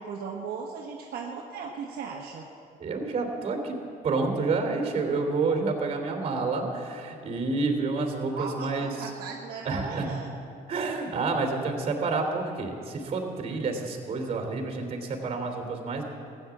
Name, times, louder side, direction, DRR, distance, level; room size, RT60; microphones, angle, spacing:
voice 1, 0.0-2.5 8.3-10.3, right 5 dB, 65° right, -1 dB, 1.4 m, -37 dB
voice 2, 2.8-3.7 4.0-9.1 9.6-10.1 10.7-16.0, right 3 dB, 40° right, 3 dB, 3.1 m, -29 dB
15.5 x 9.8 x 7.3 m, 2.5 s
cardioid pair, 110°, 17 cm